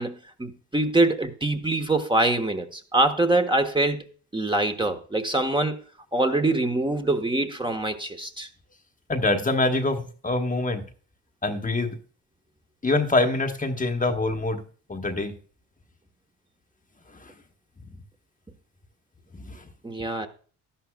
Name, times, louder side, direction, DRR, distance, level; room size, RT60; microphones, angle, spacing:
voice 1, 0.0-4.1 4.3-5.8 6.1-8.5 19.8-20.3, right 2 dB, 15° right, 1.3 m, -24 dB
voice 2, 9.1-10.8 11.4-12.0 12.8-14.6 14.9-15.4 17.1-17.3 19.3-19.7, left 2 dB, 20° left, 1.2 m, -25 dB
12.5 x 11.5 x 2.3 m
cardioid pair, 85°, 35 cm